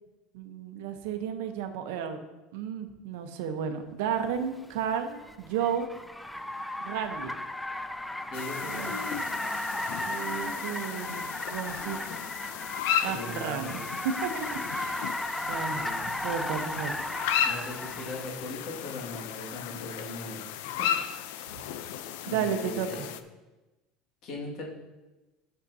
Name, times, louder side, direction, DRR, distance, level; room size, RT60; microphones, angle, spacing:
voice 1, 0.3-2.2 2.5-5.9 6.8-7.3 8.6-9.0 10.0-12.0 13.0-13.8 14.2-15.2 15.4-17.1 21.6-21.8 22.3-22.9, right 8 dB, 80° right, 7 dB, 0.9 m, -33 dB
Car, 4.4-18.3, left 1 dB, 5° left, 0.3 m, -35 dB
Human voice, 5.0-5.2 6.3-6.4 7.0-7.2 8.2-8.3 8.6-10.0 10.2-13.7 14.2-14.3 15.1-15.2, left 4 dB, 30° left, 0.7 m, -46 dB
sound 1, 8.3-23.2, left 10 dB, 80° left, 0.5 m, -35 dB
voice 2, 8.3-9.0 13.1-13.8 15.7-16.1 17.4-20.9 22.2-23.1 24.2-24.7, left 2 dB, 50° left, -2 dB, 2.0 m, -39 dB
12.0 x 6.6 x 2.8 m, 1.1 s
cardioid pair, 165°, 0 cm